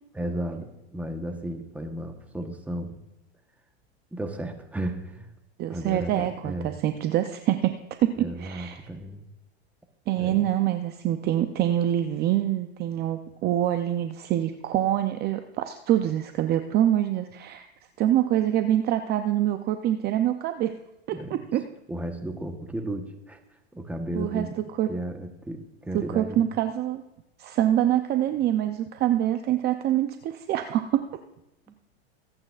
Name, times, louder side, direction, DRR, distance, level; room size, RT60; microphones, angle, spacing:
voice 1, 0.1-3.0 4.1-5.3 5.7-6.8 8.2-9.3 10.2-10.4 21.1-21.4 21.9-23.4 23.7-24.5 24.9-26.5 31.7-31.8, right 1 dB, 5° right, 5 dB, 1.1 m, -34 dB
voice 2, 5.6-7.7 8.0-8.8 10.1-17.7 18.0-20.7 21.1-21.6 24.2-24.5 24.8-24.9 25.9-27.0 27.4-31.0, right 12 dB, 30° right, 8 dB, 0.6 m, -25 dB
24.5 x 8.8 x 2.5 m, 0.92 s
supercardioid pair, 125°, 32 cm